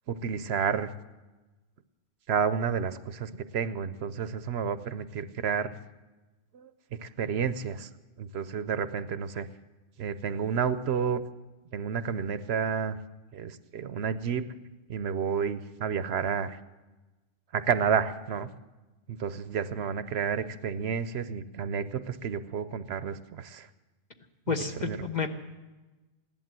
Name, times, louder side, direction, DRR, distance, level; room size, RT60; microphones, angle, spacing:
voice 1, 0.1-0.9 2.3-5.7 6.5-7.9 8.2-9.5 10.0-11.2 11.7-13.0 13.3-14.5 14.9-16.6 17.5-18.5 19.1-23.7 24.5-24.6 24.8-25.0, right 7 dB, 70° right, 12 dB, 0.9 m, -30 dB
voice 2, 24.5-25.3, left 5 dB, 40° left, 5 dB, 1.2 m, -30 dB
16.0 x 11.0 x 7.5 m, 1.1 s
omnidirectional pair, 1.2 m